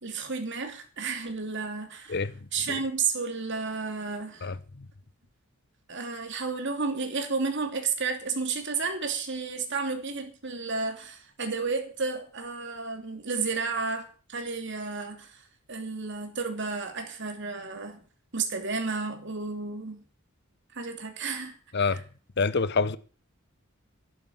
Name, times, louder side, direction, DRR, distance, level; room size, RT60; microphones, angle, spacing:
voice 1, 0.0-2.2 2.5-4.5 5.9-15.3 15.7-18.0 18.3-20.0 20.7-21.6 21.9-22.0, right 4 dB, 60° right, 2.9 m, -32 dB
voice 2, 4.4-4.9 21.7-22.0 22.4-23.0, left 4 dB, 55° left, 0.9 m, -27 dB
11.5 x 11.0 x 7.2 m
head